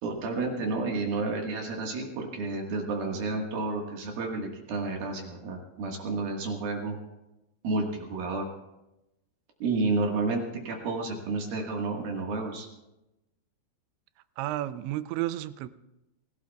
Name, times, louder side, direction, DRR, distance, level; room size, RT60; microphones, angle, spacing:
voice 1, 0.0-6.9 7.6-8.5 9.6-12.7, right 3 dB, 60° right, 0 dB, 3.1 m, -31 dB
voice 2, 14.4-15.7, right 14 dB, 85° right, 13 dB, 2.9 m, -32 dB
25.5 x 16.5 x 2.3 m, 0.95 s
omnidirectional pair, 5.2 m